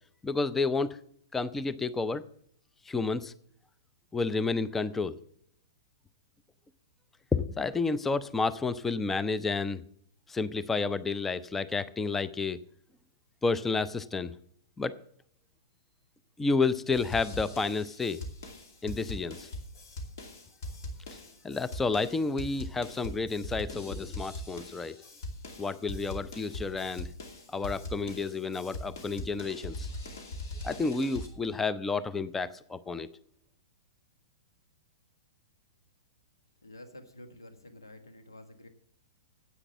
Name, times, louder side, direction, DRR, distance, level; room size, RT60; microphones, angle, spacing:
voice 1, 0.2-1.0 1.3-2.2 2.9-3.3 4.1-5.2 7.3-9.8 10.3-12.6 13.4-14.3 14.8-14.9 16.4-18.2 18.8-19.5 21.4-25.0 25.6-27.1 27.5-29.9 30.6-33.1, left 4 dB, 10° left, 16 dB, 0.4 m, -30 dB
sound 1, 16.9-31.3, left 1 dB, 55° left, 2.5 m, -41 dB
voice 2, 36.6-38.7, left 1 dB, 80° left, 7 dB, 1.4 m, -49 dB
9.8 x 8.4 x 7.1 m, 0.67 s
figure-of-eight pair, 105°, 2 cm